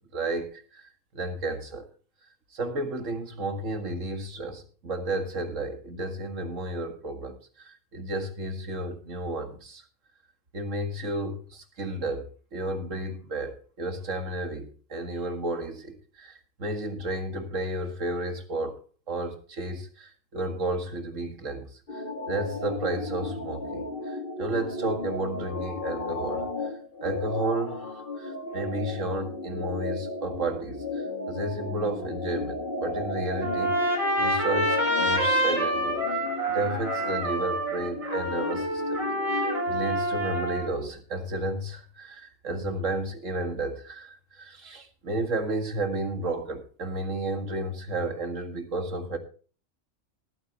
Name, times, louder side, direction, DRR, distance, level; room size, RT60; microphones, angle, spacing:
voice 1, 0.1-0.9 1.1-1.9 2.5-9.8 10.5-18.8 19.1-26.7 27.0-27.9 28.2-36.0 36.4-39.0 39.3-49.2, right 2 dB, 75° right, 2.3 m, -32 dB
sound 1, 21.9-40.9, left 2 dB, 45° left, 1.8 m, -35 dB
Trumpet, 33.4-40.7, right 1 dB, 25° right, 5.0 m, -27 dB
20.5 x 8.7 x 2.9 m
omnidirectional pair, 1.3 m